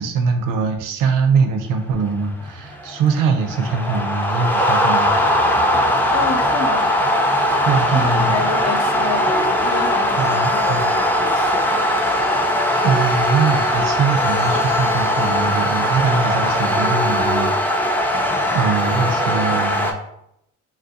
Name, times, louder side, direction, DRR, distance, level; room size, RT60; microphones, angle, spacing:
voice 1, 0.0-5.2 7.7-8.4 10.2-10.9 12.8-18.2 18.5-19.9, right 5 dB, 80° right, 6 dB, 0.5 m, -22 dB
sound 1, 2.0-19.9, left 1 dB, 5° left, 0.3 m, -19 dB
voice 2, 6.1-6.9 7.9-11.8, left 4 dB, 55° left, 4 dB, 0.6 m, -28 dB
2.6 x 2.1 x 3.9 m, 0.78 s
cardioid pair, 80°, 32 cm